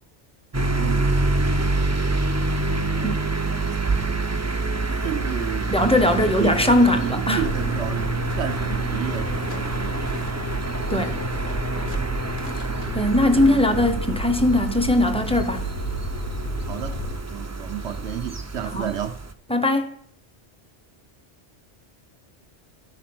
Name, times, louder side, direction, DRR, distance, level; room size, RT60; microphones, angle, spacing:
sound 1, 0.5-19.3, right 2 dB, 25° right, 0.4 m, -27 dB
voice 1, 0.8-1.1 2.8-3.4 4.9-10.4 13.1-14.1 16.7-19.2, right 10 dB, 70° right, 0.9 m, -32 dB
voice 2, 5.7-7.4 10.9-11.2 12.9-15.7 18.7-18.9 19.5-20.0, left 1 dB, 5° left, 0.7 m, -20 dB
sound 2, 7.4-17.2, right 1 dB, 60° left, 1.4 m, -31 dB
12.5 x 4.5 x 6.0 m
omnidirectional pair, 1.2 m